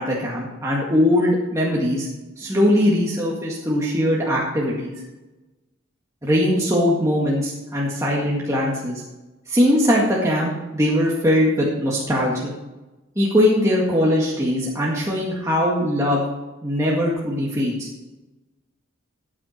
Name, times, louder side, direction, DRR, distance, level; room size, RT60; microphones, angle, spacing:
voice 1, 0.0-2.1 2.4-5.0 6.2-9.0 9.5-12.5 13.2-16.2 16.6-17.9, left 1 dB, 15° right, -5 dB, 1.9 m, -21 dB
14.5 x 8.9 x 4.4 m, 1.1 s
head